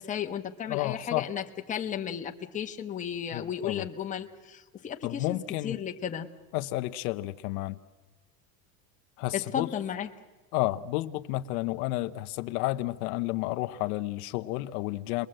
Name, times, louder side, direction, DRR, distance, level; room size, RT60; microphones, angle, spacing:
voice 1, 0.0-5.4 5.6-6.3 9.3-10.1, left 8 dB, 15° left, 1.0 m, -34 dB
voice 2, 0.7-1.3 3.3-3.8 5.0-5.8 6.5-7.8 9.2-9.7 10.5-15.3, left 17 dB, 70° left, 1.0 m, -31 dB
29.0 x 21.0 x 7.7 m
cardioid pair, 160°, 46 cm